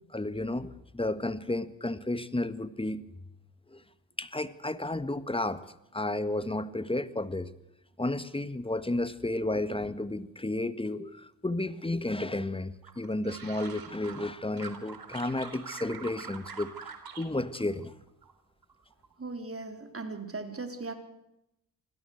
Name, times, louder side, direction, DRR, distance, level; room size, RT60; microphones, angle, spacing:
voice 1, 0.1-3.0 3.7-3.8 4.2-5.6 5.9-7.5 8.0-16.7 17.2-17.9, left 2 dB, 10° left, 1.6 m, -32 dB
sound 1, 12.8-14.3 14.6-17.3 17.5-18.3 18.6-19.1, right 6 dB, 50° right, 3.8 m, -44 dB
voice 2, 19.2-20.9, right 3 dB, 30° right, 4.0 m, -38 dB
24.5 x 16.5 x 8.1 m
hypercardioid pair, 45°, 44 cm